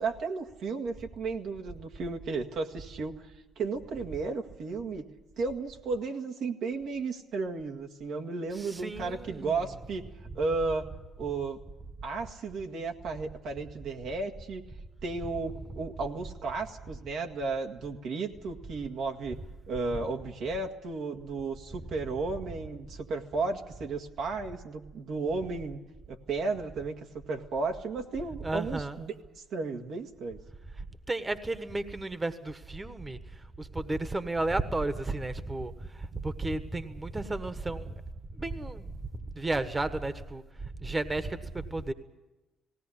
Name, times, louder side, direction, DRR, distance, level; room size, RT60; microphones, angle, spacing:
voice 1, 0.0-5.0 5.4-10.1 10.3-10.9 11.2-11.6 12.0-14.6 15.0-19.4 19.7-25.8 26.1-30.4, right 3 dB, 70° right, 3 dB, 1.8 m, -34 dB
voice 2, 8.5-9.9 10.3-10.4 15.2-15.5 19.9-20.1 28.4-29.0 30.8-37.9 38.3-38.9 39.3-41.9, right 2 dB, 20° right, 11 dB, 1.4 m, -33 dB
18.5 x 17.0 x 10.0 m, 1.1 s
supercardioid pair, 60°, 0 cm